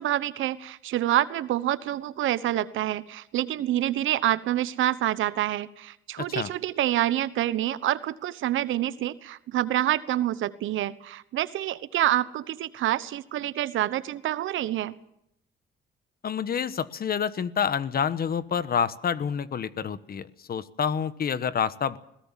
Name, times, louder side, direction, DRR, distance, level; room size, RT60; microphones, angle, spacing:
voice 1, 0.0-15.0, right 13 dB, 80° right, 16 dB, 1.1 m, -27 dB
voice 2, 6.2-6.5 16.2-22.0, left 7 dB, 50° left, 15 dB, 1.2 m, -28 dB
21.0 x 18.0 x 7.5 m, 0.77 s
cardioid pair, 90°, 20 cm